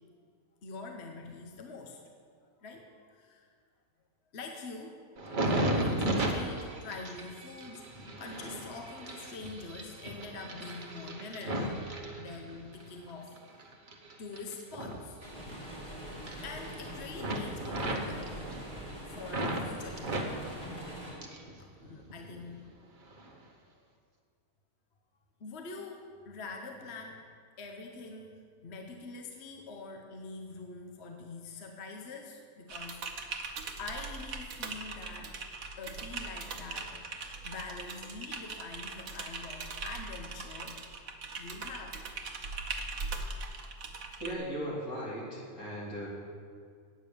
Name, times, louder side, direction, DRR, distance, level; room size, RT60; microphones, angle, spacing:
voice 1, 0.6-2.0 2.4-3.5 4.3-5.0 5.4-11.9 12.2-13.6 14.2-15.2 16.4-18.4 19.1-20.2 21.6-22.6 23.7-23.8 25.4-27.2 27.6-35.3 35.8-40.8 41.4-42.0, left 3 dB, 50° left, 3 dB, 1.1 m, -45 dB
sound 1, 5.2-12.8 13.3-15.9 16.1-16.9 17.2-19.7 20.0-21.5 21.8-22.6 23.1-23.3, right 1 dB, 35° right, 1.1 m, -35 dB
sound 2, 15.2-21.1, equal, 5° left, 2.9 m, -44 dB
Typing, 32.7-44.4, right 4 dB, 75° right, 1.3 m, -40 dB
voice 2, 44.2-46.1, equal, 75° left, -6 dB, 3.4 m, -37 dB
9.1 x 8.6 x 6.8 m, 2.1 s
omnidirectional pair, 1.5 m